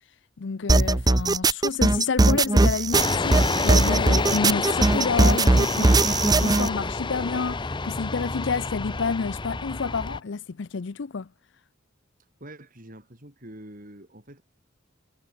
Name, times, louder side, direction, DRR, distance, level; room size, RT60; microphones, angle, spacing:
voice 1, 0.4-11.3, left 5 dB, 65° left, 0.6 m, -29 dB
sound 1, 0.7-6.7, right 2 dB, 20° right, 0.6 m, -19 dB
sound 2, 2.9-10.2, left 3 dB, 25° left, 0.8 m, -28 dB
voice 2, 12.4-14.4, right 1 dB, 45° right, 6.4 m, -45 dB
head